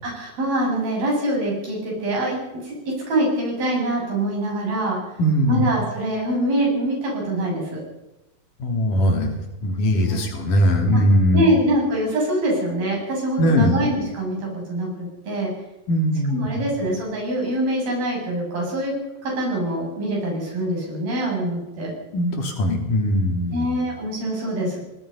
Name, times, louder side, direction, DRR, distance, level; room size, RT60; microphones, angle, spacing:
voice 1, 0.0-5.0 5.5-7.8 10.1-10.2 10.9-11.0 11.3-15.5 16.3-18.9 19.2-21.9 23.5-24.8, right 1 dB, 85° right, -2 dB, 9.9 m, -24 dB
voice 2, 5.2-5.6 8.6-9.3 9.6-11.4 13.4-13.8 15.9-16.5 22.1-23.7, equal, 65° left, 3 dB, 4.5 m, -20 dB
24.5 x 20.0 x 5.6 m, 0.99 s
omnidirectional pair, 4.1 m